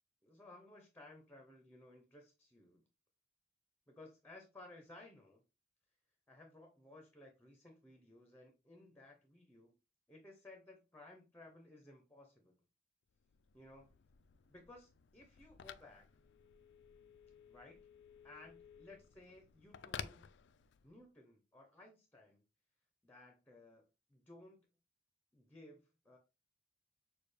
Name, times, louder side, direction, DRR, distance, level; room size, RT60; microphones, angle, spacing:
voice 1, 0.2-2.8 3.9-5.4 6.3-9.7 10.1-12.6 13.5-13.9 14.5-16.1 17.5-17.9 18.2-20.3 20.8-22.4 23.0-23.8 24.1-24.7 25.3-26.2, left 2 dB, 10° left, 3 dB, 0.7 m, -58 dB
Telephone, 13.2-21.0, left 8 dB, 65° left, 0.3 m, -54 dB
6.6 x 2.3 x 3.2 m, 0.30 s
head